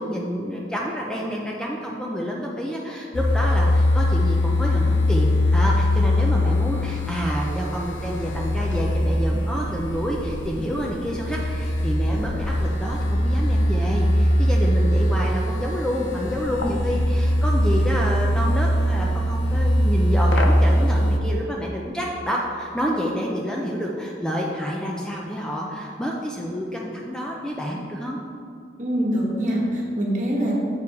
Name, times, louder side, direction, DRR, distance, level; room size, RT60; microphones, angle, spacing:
voice 1, 0.0-28.2, equal, 5° left, -2 dB, 0.5 m, -28 dB
sound 1, 3.1-21.2, left 1 dB, 85° left, 0.7 m, -21 dB
voice 2, 28.8-30.5, equal, 45° right, -3 dB, 1.3 m, -24 dB
6.9 x 4.8 x 4.7 m, 2.4 s
head